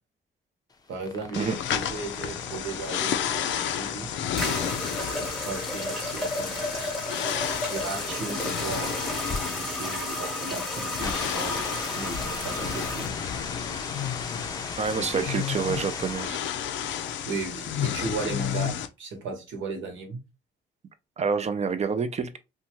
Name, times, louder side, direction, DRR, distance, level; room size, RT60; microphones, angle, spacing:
sound 1, 0.7-16.6, left 3 dB, 20° left, 0.5 m, -39 dB
voice 1, 0.9-4.1 5.0-8.9 9.6-13.1 15.0-15.4 17.2-20.2, right 4 dB, 75° right, 1.1 m, -36 dB
sound 2, 1.3-18.9, left 9 dB, 70° left, 0.4 m, -32 dB
sound 3, 3.6-3.7 4.4-13.1, equal, ahead, 1.0 m, -33 dB
voice 2, 14.8-16.4 21.2-22.4, right 5 dB, 35° right, 0.4 m, -27 dB
2.7 x 2.3 x 2.9 m
cardioid pair, 90°, 20 cm